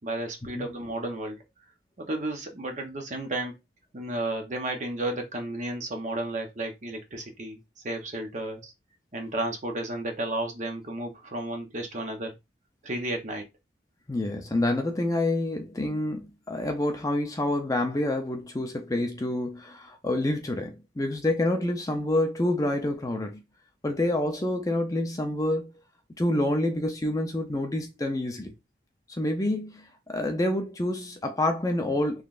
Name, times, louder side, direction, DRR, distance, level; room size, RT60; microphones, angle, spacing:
voice 1, 0.0-1.4 2.0-3.5 3.9-7.6 7.8-8.7 9.1-12.3 12.8-13.5, right 1 dB, 40° right, 0.8 m, -32 dB
voice 2, 14.1-23.4 23.8-25.7 26.2-28.5 29.2-32.2, left 1 dB, 20° left, 0.5 m, -27 dB
3.8 x 3.2 x 2.4 m
head